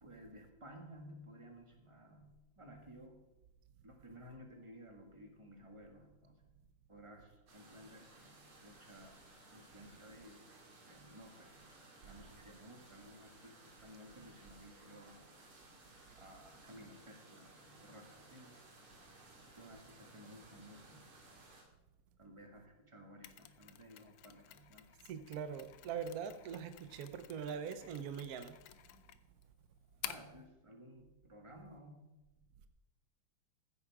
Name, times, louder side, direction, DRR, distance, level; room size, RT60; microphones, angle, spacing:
voice 1, 0.0-2.3 2.6-3.2 3.8-6.5 6.9-9.2 9.5-10.4 10.9-11.7 12.0-15.2 16.2-18.5 19.5-21.0 22.2-24.9 30.0-32.1, equal, 15° right, 1.5 m, -56 dB
sound 1, 7.5-21.6, right 2 dB, 85° right, 3.0 m, -60 dB
Mechanisms, 23.2-30.4, left 12 dB, 70° left, 1.3 m, -52 dB
voice 2, 25.1-28.5, right 7 dB, 65° right, 0.9 m, -42 dB
14.5 x 7.3 x 4.7 m
omnidirectional pair, 2.3 m